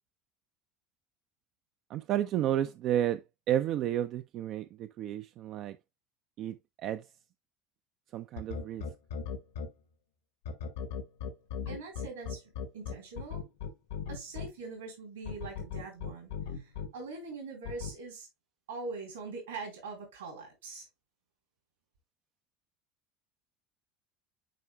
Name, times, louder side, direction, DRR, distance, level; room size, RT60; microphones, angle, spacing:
voice 1, 1.9-5.8 6.4-7.1 8.1-8.8, right 11 dB, 50° right, 0.4 m, -32 dB
sound 1, 8.4-9.7 10.4-14.5 15.2-16.9 17.6-17.9, left 7 dB, 70° left, 1.0 m, -37 dB
voice 2, 11.7-12.4 12.7-13.5 14.1-16.3 16.9-18.3 18.7-20.9, right 3 dB, 75° right, 3.8 m, -42 dB
9.2 x 4.9 x 2.2 m
figure-of-eight pair, 70°, 0 cm